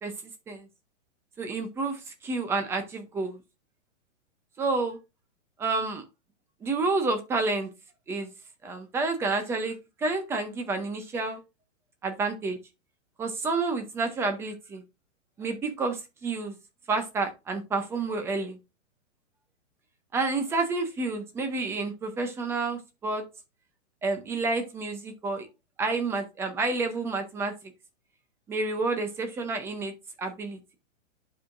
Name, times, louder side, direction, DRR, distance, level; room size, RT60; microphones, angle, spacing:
voice 1, 1.4-3.4 4.6-5.0 5.6-6.0 6.6-7.7 8.1-8.3 8.6-11.4 12.0-12.6 13.2-14.8 15.4-16.6 16.9-18.6 20.1-23.2 24.0-25.5 25.8-27.5 28.5-29.9 30.2-30.8, right 3 dB, 5° right, 7 dB, 0.5 m, -29 dB
10.5 x 4.8 x 2.4 m, 0.25 s
hypercardioid pair, 150°, 39 cm